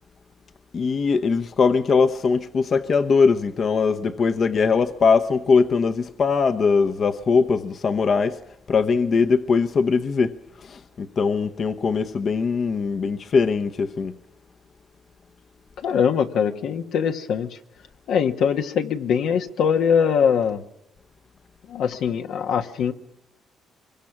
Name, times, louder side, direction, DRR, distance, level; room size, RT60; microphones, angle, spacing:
voice 1, 0.7-8.4 8.7-14.1, left 5 dB, 50° left, 1.0 m, -21 dB
voice 2, 15.8-17.5 18.1-20.6 21.7-22.9, left 7 dB, 80° left, 1.4 m, -22 dB
24.0 x 23.0 x 6.0 m
cardioid pair, 90°, 0 cm